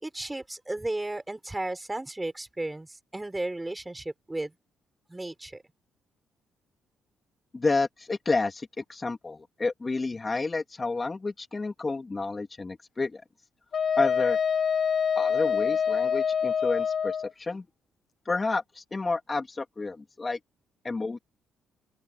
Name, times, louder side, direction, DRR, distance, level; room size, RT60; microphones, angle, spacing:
voice 1, 0.0-2.9 3.1-4.5 5.1-5.6, right 2 dB, 15° right, 4.8 m, -34 dB
voice 2, 7.5-13.2 14.0-14.4 15.2-17.6 18.3-20.4 20.8-21.2, left 3 dB, 25° left, 2.2 m, -30 dB
Wind instrument woodwind instrument, 13.7-17.3, left 7 dB, 50° left, 0.7 m, -26 dB
open air
cardioid pair, 90°, 0 cm